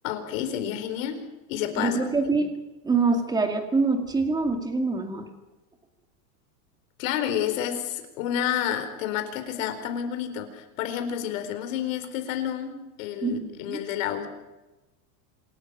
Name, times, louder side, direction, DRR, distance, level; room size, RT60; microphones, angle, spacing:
voice 1, 0.0-1.2 1.5-2.0 7.0-14.3, left 10 dB, 60° left, 7 dB, 4.3 m, -30 dB
voice 2, 1.8-2.5 2.8-5.3 13.2-13.8, right 3 dB, 10° right, 5 dB, 2.2 m, -25 dB
27.5 x 13.0 x 9.1 m, 1.1 s
supercardioid pair, 175°, 44 cm